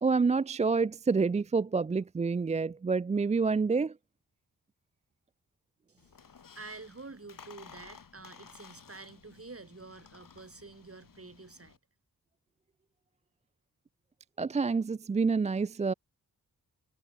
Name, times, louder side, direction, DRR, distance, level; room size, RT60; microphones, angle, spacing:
voice 1, 0.0-4.0 14.4-15.9, right 4 dB, 20° right, 0.3 m, -28 dB
Squeak, 6.0-11.8, left 6 dB, 60° left, 2.4 m, -55 dB
voice 2, 6.5-11.8, right 3 dB, 40° right, 6.3 m, -48 dB
cardioid pair, 60°, 37 cm